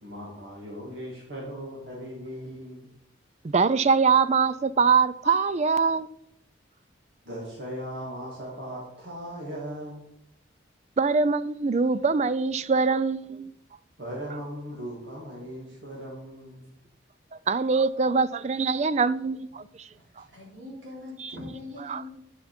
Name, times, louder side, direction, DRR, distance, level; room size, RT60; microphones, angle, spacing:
voice 1, 0.0-2.8 5.2-5.5 7.2-10.0 14.0-16.7, equal, 65° right, 2.5 m, -38 dB
voice 2, 3.5-6.1 11.0-13.5 17.5-19.9 21.2-21.3 21.9-22.0, right 5 dB, 35° right, 0.3 m, -23 dB
voice 3, 19.9-22.1, left 2 dB, 80° right, 3.5 m, -42 dB
9.4 x 5.8 x 5.2 m
head